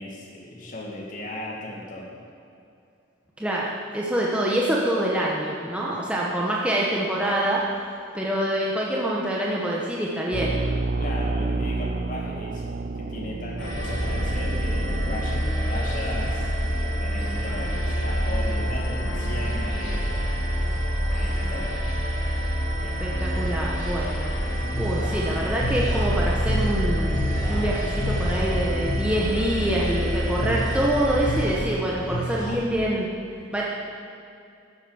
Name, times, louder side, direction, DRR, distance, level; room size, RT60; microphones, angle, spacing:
voice 1, 0.0-2.2 11.0-20.5 21.1-21.8, left 1 dB, 40° left, -3 dB, 2.3 m, -36 dB
voice 2, 3.4-7.6 8.1-10.6 22.8-24.3 24.8-33.1 33.5-33.6, right 1 dB, 5° right, -4 dB, 1.3 m, -26 dB
sound 1, 10.3-15.4, right 3 dB, 50° right, 0.4 m, -29 dB
sound 2, 13.6-31.4, equal, 65° left, 3.7 m, -26 dB
sound 3, 24.3-32.5, equal, 20° left, 3.4 m, -31 dB
13.5 x 8.5 x 7.0 m, 2.5 s
head